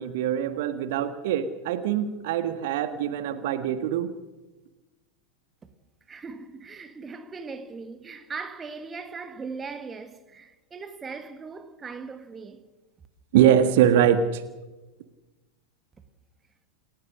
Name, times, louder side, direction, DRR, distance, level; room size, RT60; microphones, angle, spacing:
voice 1, 0.0-4.1 13.3-14.4, right 9 dB, 50° right, 1.5 m, -23 dB
voice 2, 6.1-12.6, right 4 dB, 20° right, 1.7 m, -39 dB
28.5 x 15.0 x 6.5 m
figure-of-eight pair, 90°, 0 cm